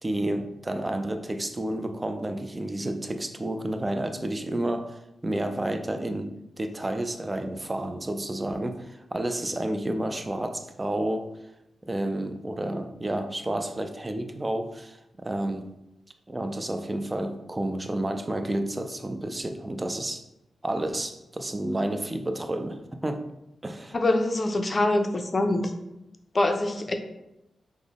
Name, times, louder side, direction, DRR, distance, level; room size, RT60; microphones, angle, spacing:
voice 1, 0.0-6.3 6.6-11.3 11.8-15.7 16.3-20.2 20.6-23.2 23.6-24.0, right 1 dB, 25° right, 7 dB, 0.4 m, -30 dB
voice 2, 23.9-25.7 26.3-26.9, left 2 dB, 40° left, 6 dB, 0.4 m, -24 dB
3.7 x 2.0 x 3.5 m, 0.90 s
cardioid pair, 50°, 0 cm